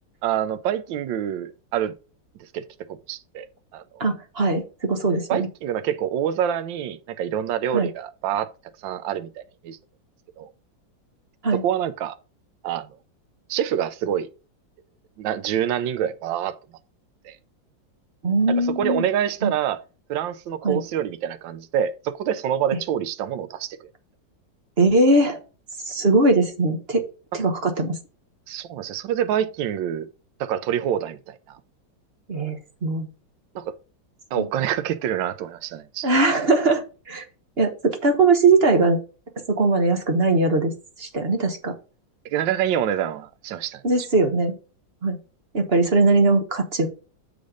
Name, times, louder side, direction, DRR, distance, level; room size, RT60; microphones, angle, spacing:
voice 1, 0.2-1.9 2.5-2.6 2.9-3.5 3.7-3.8 5.3-8.5 8.8-9.8 10.4-10.5 11.6-12.2 12.6-12.9 13.5-14.3 15.2-16.5 17.2-17.4 18.8-19.8 20.1-23.8 28.5-30.1 30.4-31.6 33.5-33.6 34.3-36.1 42.2-43.8, right 10 dB, 80° right, 1.4 m, -26 dB
voice 2, 4.0-5.5 7.7-7.9 11.4-11.6 18.2-19.1 19.4-19.5 20.6-20.8 24.8-25.4 25.9-27.0 27.3-28.0 32.3-33.1 34.4-34.5 36.0-37.2 37.6-39.0 39.5-40.7 41.0-41.7 43.8-44.5 45.0-45.2 45.5-46.9, right 3 dB, 35° right, 1.2 m, -20 dB
6.9 x 5.2 x 4.9 m
omnidirectional pair, 2.1 m